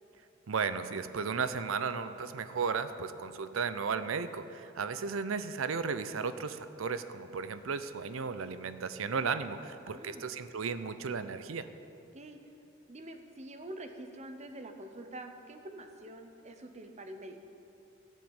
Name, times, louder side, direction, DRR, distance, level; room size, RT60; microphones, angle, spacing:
voice 1, 0.5-11.7, right 5 dB, 85° right, 12 dB, 0.6 m, -35 dB
voice 2, 9.9-10.3 12.1-12.4 12.9-17.4, right 1 dB, 35° right, 6 dB, 0.9 m, -46 dB
14.0 x 5.0 x 8.8 m, 2.7 s
head